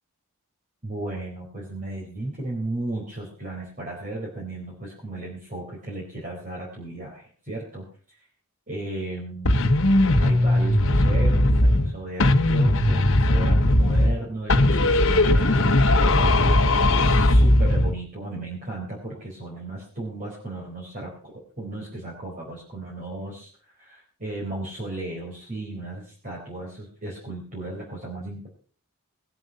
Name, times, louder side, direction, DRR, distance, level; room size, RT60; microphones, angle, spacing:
voice 1, 0.8-7.8 8.7-9.6 10.2-28.5, right 2 dB, 35° right, -3 dB, 4.2 m, -35 dB
sound 1, 9.4-11.9 12.2-14.2 14.5-17.9, left 1 dB, 60° left, 1.0 m, -18 dB
20.5 x 7.9 x 5.4 m, 0.41 s
head